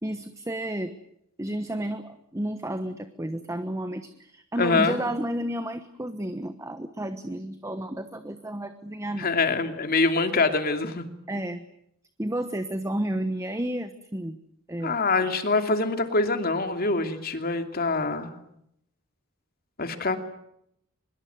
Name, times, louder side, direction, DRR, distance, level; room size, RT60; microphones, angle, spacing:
voice 1, 0.0-0.9 1.4-9.3 11.3-11.6 12.2-14.4 14.7-15.0, right 1 dB, 15° right, 9 dB, 1.1 m, -31 dB
voice 2, 4.6-5.0 9.2-11.1 14.8-18.3 19.8-20.2, left 3 dB, 45° left, 7 dB, 2.7 m, -24 dB
24.5 x 22.0 x 9.4 m, 0.77 s
head